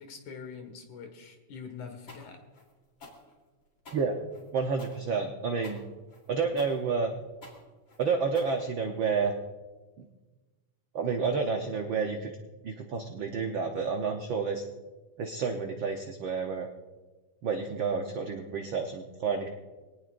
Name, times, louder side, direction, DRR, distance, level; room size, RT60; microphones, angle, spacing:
voice 1, 0.0-2.4, left 6 dB, 80° left, 5 dB, 3.2 m, -44 dB
sound 1, 2.1-9.1, left 2 dB, 40° left, 3.8 m, -51 dB
voice 2, 4.5-5.8 6.3-7.1 8.0-9.3 10.0-10.1 10.9-12.3 12.6-14.6 15.2-16.7 17.4-19.5, right 5 dB, 65° right, 3 dB, 1.2 m, -30 dB
23.5 x 18.5 x 2.6 m, 1.3 s
omnidirectional pair, 3.3 m